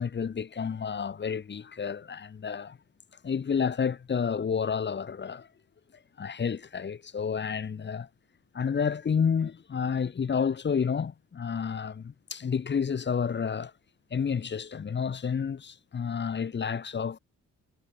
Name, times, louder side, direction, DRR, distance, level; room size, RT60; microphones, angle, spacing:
voice 1, 0.0-2.8 3.2-5.5 6.2-8.1 8.5-13.7 14.1-17.2, left 6 dB, 35° left, 1.4 m, -30 dB
cardioid pair, 90°, 30 cm